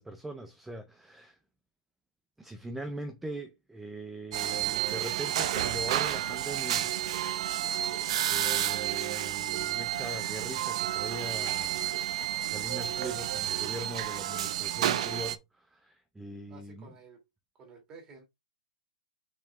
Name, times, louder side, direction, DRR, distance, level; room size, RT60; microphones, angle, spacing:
voice 1, 0.0-1.4 2.4-6.9 8.2-11.9 12.4-16.9, right 1 dB, 5° right, 0.5 m, -41 dB
sound 1, 4.3-15.4, right 11 dB, 55° right, 0.6 m, -31 dB
voice 2, 16.5-17.2 17.6-18.2, right 4 dB, 20° right, 2.7 m, -52 dB
6.2 x 4.4 x 3.5 m
hypercardioid pair, 150°, 4 cm